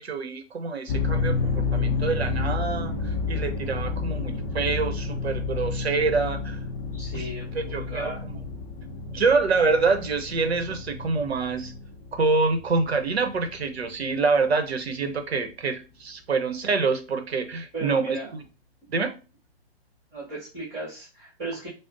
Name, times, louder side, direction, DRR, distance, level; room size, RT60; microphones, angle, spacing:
voice 1, 0.0-6.6 7.1-7.3 7.5-8.1 9.1-11.7 12.1-18.4 18.9-19.2, right 4 dB, 75° right, 7 dB, 0.8 m, -26 dB
sound 1, 0.9-14.2, left 4 dB, 20° left, 0.4 m, -30 dB
voice 2, 6.9-8.2 17.7-18.3 20.1-21.7, right 2 dB, 25° right, -5 dB, 1.5 m, -36 dB
4.9 x 2.0 x 2.5 m, 0.32 s
figure-of-eight pair, 135°, 32 cm